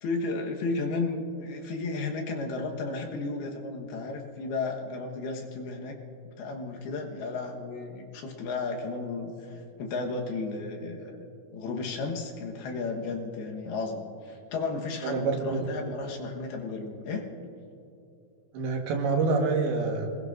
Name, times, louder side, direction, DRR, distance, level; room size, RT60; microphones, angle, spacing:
voice 1, 0.0-6.0 6.4-11.1 11.5-17.2, left 3 dB, 80° left, 1 dB, 3.2 m, -33 dB
voice 2, 15.0-15.7 18.5-20.1, right 4 dB, 75° right, 1 dB, 3.4 m, -27 dB
26.5 x 20.5 x 2.6 m, 2.7 s
omnidirectional pair, 4.6 m